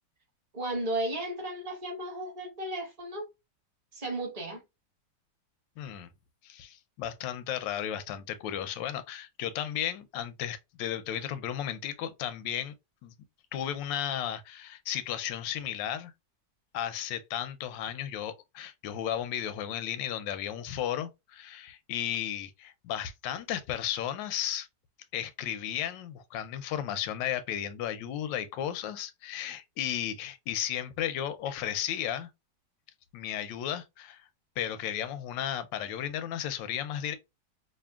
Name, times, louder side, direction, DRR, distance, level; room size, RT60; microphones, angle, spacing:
voice 1, 0.5-3.2 3.9-4.6, right 1 dB, 20° right, 1.4 m, -34 dB
voice 2, 5.8-6.1 6.4-12.7 13.0-13.1 13.5-16.1 16.7-24.7 25.1-32.3 33.1-34.3 34.6-37.1, left 10 dB, 90° left, 1.3 m, -34 dB
5.1 x 2.6 x 2.3 m
omnidirectional pair, 1.9 m